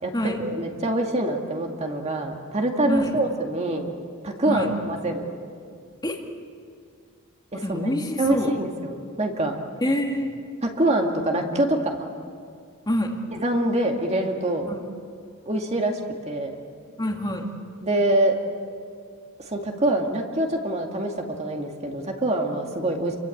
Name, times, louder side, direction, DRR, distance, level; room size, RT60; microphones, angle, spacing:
voice 1, 0.0-3.9 4.2-5.3 7.5-7.9 8.2-9.5 10.6-12.1 13.3-14.7 15.5-15.9 16.3-16.5 17.8-18.4 19.5-21.1 21.4-23.2, right 1 dB, 30° right, 2 dB, 2.2 m, -25 dB
voice 2, 2.9-3.2 4.5-4.7 6.0-6.2 7.5-8.5 9.8-10.3 12.9-13.1 14.7-14.8 17.0-17.5, left 1 dB, 20° left, 1 dB, 2.2 m, -26 dB
29.5 x 23.5 x 8.6 m, 2.2 s
head